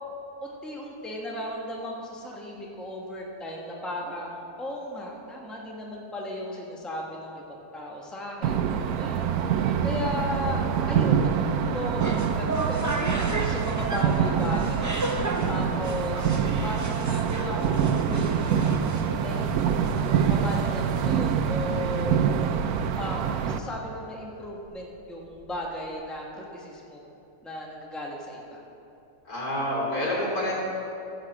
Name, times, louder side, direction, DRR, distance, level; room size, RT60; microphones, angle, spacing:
voice 1, 0.4-12.8 13.4-15.0 15.5-18.7 19.2-22.2 23.0-27.0 27.4-28.6, left 1 dB, ahead, -2 dB, 1.2 m, -36 dB
sound 1, 8.4-23.6, right 7 dB, 80° right, 1.1 m, -25 dB
sound 2, 10.1-12.3 12.5-16.8 23.0-23.1 23.5-23.7 24.0-24.1 24.6-24.8 25.1-26.1, equal, 55° left, 2.6 m, -39 dB
sound 3, 11.9-20.9, right 2 dB, 25° right, 0.4 m, -35 dB
voice 2, 29.3-30.5, left 1 dB, 80° left, -6 dB, 3.7 m, -28 dB
14.5 x 5.2 x 7.3 m, 2.8 s
omnidirectional pair, 1.6 m